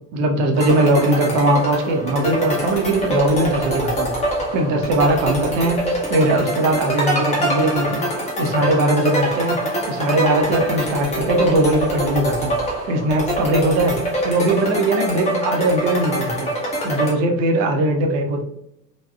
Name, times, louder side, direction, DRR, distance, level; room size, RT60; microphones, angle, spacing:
voice 1, 0.1-5.8 6.1-8.1 8.4-9.6 9.9-12.5 12.9-14.0 14.2-16.5 16.8-18.4, right 1 dB, 35° right, 3 dB, 0.5 m, -20 dB
sound 1, 0.5-17.1, right 1 dB, 15° left, 0.6 m, -24 dB
3.3 x 2.0 x 2.2 m, 0.79 s
figure-of-eight pair, 70°, 50 cm